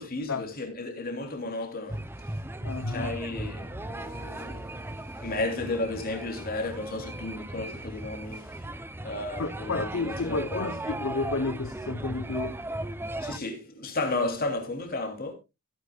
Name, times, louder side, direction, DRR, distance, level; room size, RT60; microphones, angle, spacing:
voice 1, 0.0-2.3 2.9-8.7 9.0-10.8 13.2-15.3, left 2 dB, 40° left, 3.2 m, -33 dB
sound 1, 1.9-13.4, right 1 dB, 10° right, 0.6 m, -37 dB
voice 2, 2.6-3.1 9.4-12.6, left 3 dB, 60° left, 0.9 m, -31 dB
16.5 x 9.6 x 2.4 m
head